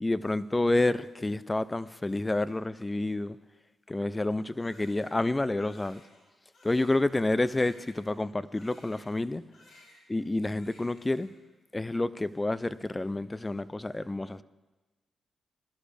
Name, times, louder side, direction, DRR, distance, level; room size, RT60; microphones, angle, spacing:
voice 1, 0.0-3.4 3.9-6.0 6.6-9.4 10.1-11.3 11.7-14.4, left 2 dB, 20° left, 0.5 m, -29 dB
Crying sobbing, 4.6-9.3 9.5-10.3 10.5-11.5, left 1 dB, 90° left, 5.5 m, -58 dB
20.0 x 11.5 x 3.4 m
cardioid pair, 65°, 0 cm